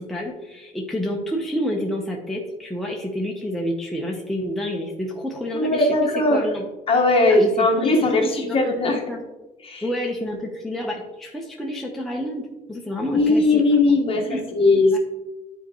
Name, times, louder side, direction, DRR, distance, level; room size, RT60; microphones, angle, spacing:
voice 1, 0.0-6.0 6.3-6.7 7.3-9.2 9.8-13.6 13.9-14.0 14.3-14.4, equal, ahead, -2 dB, 0.9 m, -29 dB
voice 2, 5.5-6.4 6.9-9.0 9.6-9.8 13.1-15.0, left 2 dB, 35° left, 0 dB, 1.5 m, -19 dB
9.9 x 4.5 x 3.0 m, 1.1 s
cardioid pair, 110°, 17 cm